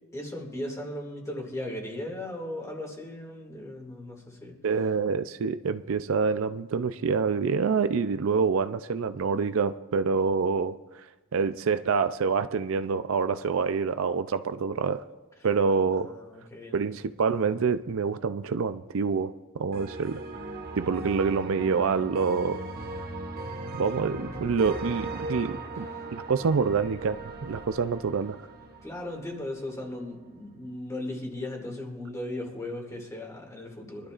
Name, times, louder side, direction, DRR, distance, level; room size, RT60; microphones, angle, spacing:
voice 1, 0.1-4.6 16.0-16.8 25.8-25.9 28.8-34.1, left 1 dB, 15° left, 0 dB, 2.2 m, -37 dB
voice 2, 4.6-10.8 11.3-15.0 15.4-16.1 16.7-20.2 20.8-22.6 23.7-28.4, right 5 dB, 65° right, 11 dB, 0.4 m, -26 dB
sound 1, 19.7-29.8, right 2 dB, 45° right, 1.4 m, -38 dB
23.0 x 12.0 x 2.5 m, 1.1 s
head